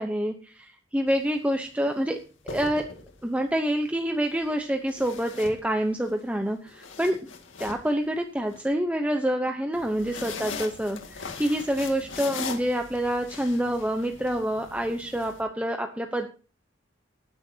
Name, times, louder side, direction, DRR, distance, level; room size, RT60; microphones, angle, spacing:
voice 1, 0.0-2.2 2.4-2.9 3.2-7.2 7.6-16.3, equal, 5° right, 4 dB, 0.8 m, -27 dB
sound 1, 1.1-1.3 2.2-3.4 4.9-6.1 6.5-8.6 9.7-15.4, left 5 dB, 90° left, 2.1 m, -40 dB
19.5 x 9.8 x 2.8 m, 0.36 s
head